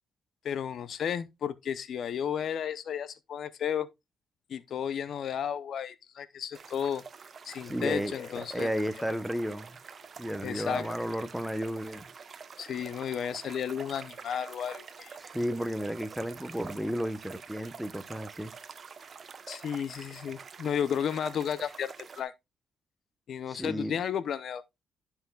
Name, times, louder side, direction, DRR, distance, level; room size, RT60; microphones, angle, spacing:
voice 1, 0.4-3.9 4.5-7.0 7.4-8.7 10.4-10.9 12.6-15.2 19.5-22.3 23.3-24.6, left 8 dB, 65° left, 0.6 m, -33 dB
sound 1, 6.5-22.2, right 5 dB, 45° right, 0.8 m, -47 dB
voice 2, 7.7-9.8 10.2-12.1 15.2-18.5 23.5-23.9, equal, 5° right, 0.8 m, -33 dB
12.0 x 5.7 x 2.3 m
cardioid pair, 90°, 0 cm